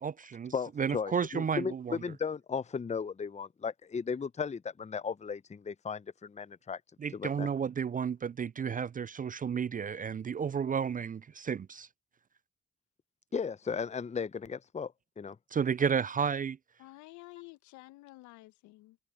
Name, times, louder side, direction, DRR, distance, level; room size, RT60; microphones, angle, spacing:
voice 1, 0.0-2.0 7.0-11.9 15.5-16.6, right 7 dB, 30° right, 0.5 m, -32 dB
voice 2, 0.5-6.8 7.1-7.5 13.3-15.4, left 6 dB, 25° left, 0.8 m, -36 dB
voice 3, 16.8-19.0, left 20 dB, 75° left, 1.7 m, -51 dB
hypercardioid pair, 45°, 30 cm